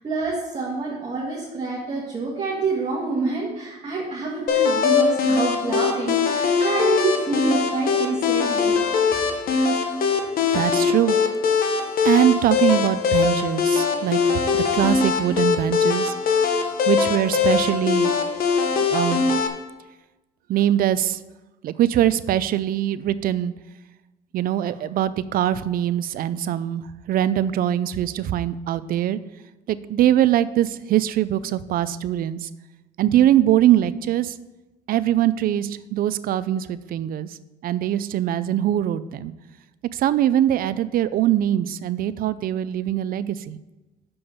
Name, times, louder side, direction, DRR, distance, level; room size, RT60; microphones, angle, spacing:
voice 1, 0.0-8.8 9.1-9.2, right 3 dB, 35° right, -6 dB, 2.1 m, -27 dB
sound 1, 4.5-19.5, left 5 dB, 60° left, 1.2 m, -21 dB
voice 2, 10.5-11.2 12.0-14.2 14.5-16.1 16.9-18.2 18.9-19.2 20.5-21.2 21.6-23.5 24.3-29.2 29.7-32.5 33.0-34.3 34.9-37.3 37.6-39.3 39.9-43.6, right 11 dB, 60° right, 15 dB, 0.5 m, -22 dB
6.9 x 5.3 x 7.1 m, 1.1 s
cardioid pair, 110°, 17 cm